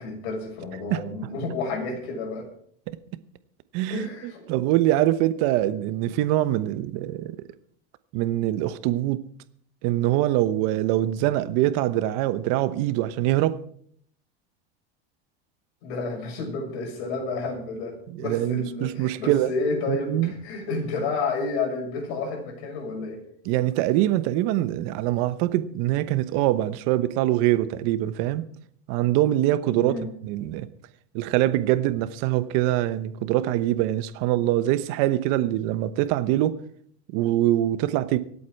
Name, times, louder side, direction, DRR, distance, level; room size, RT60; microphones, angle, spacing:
voice 1, 0.0-2.5 3.9-4.5 15.8-23.2 29.8-30.1, left 3 dB, 70° left, 6.4 m, -30 dB
voice 2, 3.7-7.4 8.1-9.2 9.8-13.6 18.1-19.5 19.9-20.3 23.4-28.4 28.9-29.9 30.2-30.7 31.1-36.6 37.1-38.2, right 14 dB, 55° right, 1.1 m, -24 dB
25.0 x 8.5 x 4.7 m
supercardioid pair, 140°, 32 cm